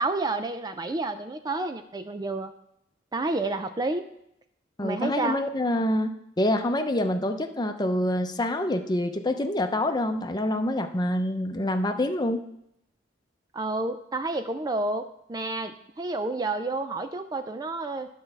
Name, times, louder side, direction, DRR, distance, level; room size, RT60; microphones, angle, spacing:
voice 1, 0.0-2.5 3.1-4.0 4.8-5.4 13.5-18.1, right 2 dB, 20° right, 9 dB, 0.4 m, -30 dB
voice 2, 4.8-6.1 6.4-12.4, left 1 dB, 20° left, 6 dB, 0.7 m, -26 dB
11.0 x 4.6 x 6.7 m, 0.78 s
head